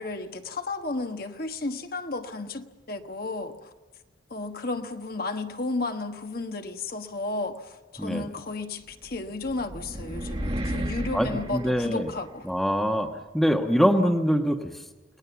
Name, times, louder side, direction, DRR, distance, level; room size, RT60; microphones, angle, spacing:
voice 1, 0.0-3.7 4.3-12.5, left 2 dB, 50° left, 6 dB, 1.4 m, -33 dB
sound 1, 9.1-12.5, right 1 dB, 30° right, 1.7 m, -33 dB
voice 2, 11.1-12.1 12.4-14.8, equal, ahead, 4 dB, 1.2 m, -24 dB
29.5 x 20.0 x 7.1 m, 1.2 s
head